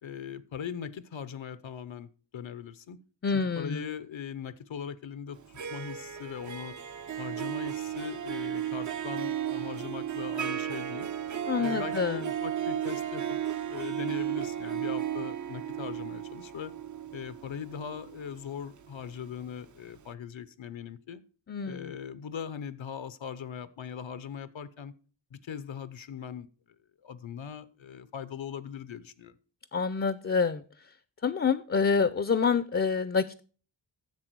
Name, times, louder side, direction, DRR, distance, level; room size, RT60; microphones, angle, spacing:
voice 1, 0.0-3.0 3.3-6.8 7.2-11.1 11.6-13.4 13.6-16.7 17.1-21.2 21.6-24.9 25.3-26.5 27.0-29.4, left 7 dB, 85° left, 0.8 m, -40 dB
voice 2, 3.2-3.8 11.5-12.2 21.5-21.9 29.7-30.6 31.2-33.4, left 5 dB, 30° left, 0.5 m, -27 dB
Harp, 5.4-19.3, right 10 dB, 40° right, 0.5 m, -34 dB
10.5 x 7.4 x 4.6 m
wide cardioid pair, 75°, 46 cm